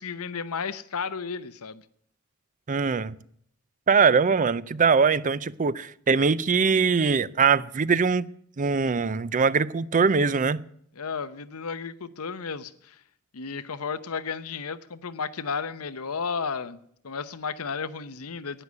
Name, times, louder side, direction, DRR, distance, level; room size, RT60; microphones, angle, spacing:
voice 1, 0.0-1.8 11.0-13.0 13.3-16.8 17.0-18.6, left 5 dB, 85° left, 0.8 m, -33 dB
voice 2, 2.7-3.1 3.9-8.3 8.6-10.6, right 5 dB, 35° right, 0.5 m, -22 dB
11.5 x 9.9 x 9.5 m
head